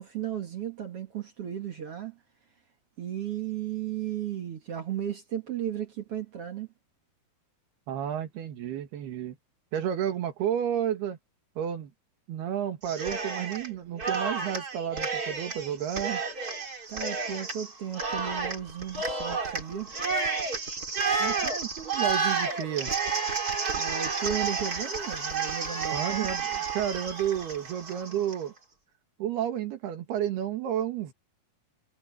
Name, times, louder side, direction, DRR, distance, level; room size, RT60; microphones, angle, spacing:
voice 1, 0.0-2.2 3.0-6.7 16.9-19.9 23.8-26.3, right 9 dB, 55° right, 1.7 m, -35 dB
voice 2, 7.9-9.4 9.7-11.2 11.6-11.9 12.3-16.2 21.2-22.9 25.9-28.5 29.2-31.1, right 10 dB, 85° right, 3.9 m, -31 dB
Cheering, 12.8-13.7 14.0-28.4, right 4 dB, 25° right, 2.9 m, -31 dB
omnidirectional pair, 4.5 m